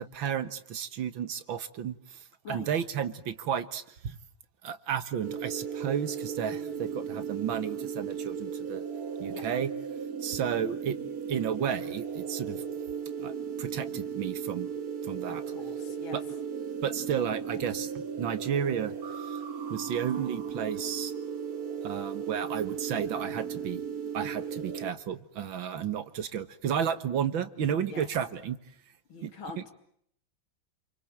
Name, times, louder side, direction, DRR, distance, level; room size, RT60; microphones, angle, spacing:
voice 1, 0.0-4.2 4.6-8.8 9.2-9.7 10.2-11.0 11.3-12.6 13.2-13.3 13.6-14.7 15.0-15.4 16.1-16.2 16.8-17.9 18.2-19.0 19.2-19.4 19.7-21.1 21.8-23.8 24.1-28.6 29.2-29.3, right 8 dB, 75° right, 13 dB, 2.1 m, -32 dB
sound 1, 5.2-24.9, right 7 dB, 50° right, 1.8 m, -36 dB
voice 2, 6.5-6.9 9.3-9.5 15.3-16.2 17.5-17.7 27.9-28.1 29.1-29.7, left 4 dB, 85° left, 7 dB, 3.5 m, -44 dB
28.5 x 23.5 x 8.9 m, 0.70 s
omnidirectional pair, 2.2 m